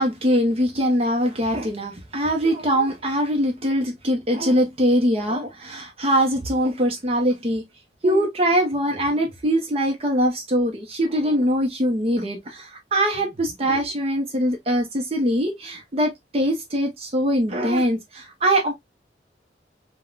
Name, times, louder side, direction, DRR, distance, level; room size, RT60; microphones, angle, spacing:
voice 1, 0.0-7.6 8.0-18.7, equal, 35° right, 0.6 m, -22 dB
3.5 x 2.1 x 2.3 m
head